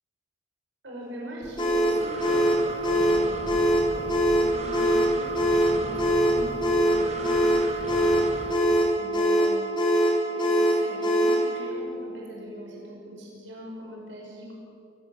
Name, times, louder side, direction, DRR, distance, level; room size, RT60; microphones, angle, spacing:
voice 1, 0.8-3.4 3.9-9.9 10.3-14.6, equal, 70° right, -3 dB, 6.2 m, -41 dB
Breathing, 1.4-8.5, right 2 dB, 35° right, 2.0 m, -37 dB
sound 1, 1.6-11.5, right 1 dB, 25° left, 4.4 m, -22 dB
27.5 x 16.5 x 7.5 m, 2.7 s
head